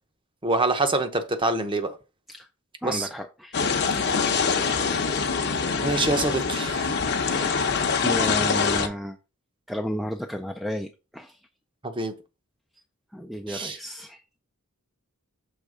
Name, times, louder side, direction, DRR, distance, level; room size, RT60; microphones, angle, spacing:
voice 1, 0.4-1.9 2.8-3.1 5.8-6.9 11.8-12.1 13.5-13.8, right 2 dB, 20° right, 0.7 m, -25 dB
voice 2, 2.8-5.0 5.5-5.9 7.2-9.2 9.7-11.4 13.1-14.2, equal, ahead, 0.4 m, -34 dB
sound 1, 3.5-8.9, left 5 dB, 50° left, 0.8 m, -24 dB
6.6 x 3.4 x 4.9 m
head